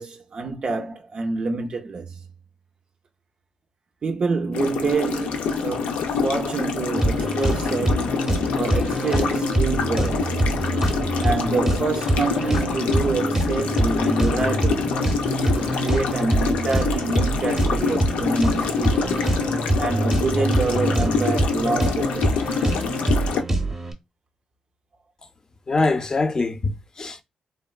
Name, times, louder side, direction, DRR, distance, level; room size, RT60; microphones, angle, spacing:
voice 1, 0.0-2.2 4.0-10.4 11.2-15.0 15.6-19.3 19.8-22.3, right 3 dB, 50° right, 0.4 m, -27 dB
sound 1, 4.5-23.4, left 5 dB, 85° left, 0.4 m, -26 dB
sound 2, 7.0-23.9, right 1 dB, 20° right, 0.7 m, -25 dB
voice 2, 25.7-27.2, left 3 dB, 35° left, 0.5 m, -23 dB
3.3 x 2.1 x 2.3 m
cardioid pair, 70°, 2 cm